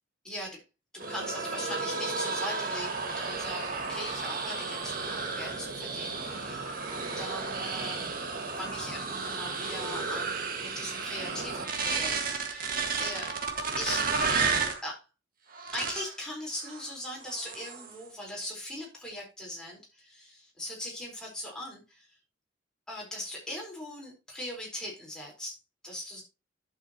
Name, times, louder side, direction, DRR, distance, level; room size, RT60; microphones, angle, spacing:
voice 1, 0.2-0.6 0.9-8.1 8.6-13.3 13.8-14.5 14.8-15.1 15.7-22.1 22.9-25.6 25.8-26.2, left 1 dB, 5° left, -2 dB, 4.3 m, -40 dB
sound 1, 1.0-14.8 15.5-16.1 16.6-16.9 17.2-18.0, right 4 dB, 45° right, 1.9 m, -33 dB
11.0 x 7.6 x 3.0 m, 0.28 s
head